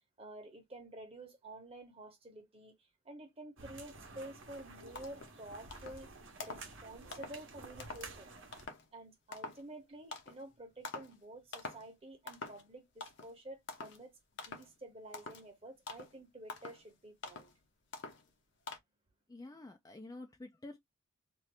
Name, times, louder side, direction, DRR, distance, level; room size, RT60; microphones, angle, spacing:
voice 1, 0.2-2.8 3.0-6.1 6.4-8.3 8.9-14.2 14.5-17.5, right 1 dB, 25° right, 0.9 m, -50 dB
sound 1, 3.6-8.7, right 3 dB, 55° right, 0.9 m, -51 dB
sound 2, 4.5-4.6 5.0-5.3 5.7-6.1 6.4-6.7 7.1-7.4 7.8-8.1 8.5-8.9 9.3-9.6 10.1-10.4 10.8-11.2 11.5-11.9 12.3-12.7 13.0-13.3 13.7-14.0 14.4-14.7 15.1-15.5 15.9-16.2 16.5-16.8 17.2-17.6 17.9-18.3 18.7-18.8, left 3 dB, 50° left, 0.7 m, -46 dB
voice 2, 19.3-20.8, left 2 dB, 15° left, 0.3 m, -49 dB
2.7 x 2.5 x 3.3 m
head